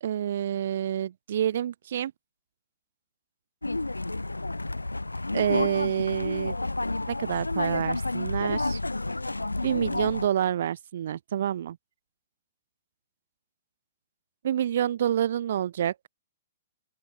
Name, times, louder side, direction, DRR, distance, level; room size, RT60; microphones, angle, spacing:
voice 1, 0.0-2.1 5.3-6.6 7.1-8.8 9.6-11.8 14.4-15.9, right 10 dB, 55° right, 0.4 m, -28 dB
sound 1, 3.6-10.3, left 2 dB, 85° left, 0.7 m, -30 dB
open air
figure-of-eight pair, 115°, 0 cm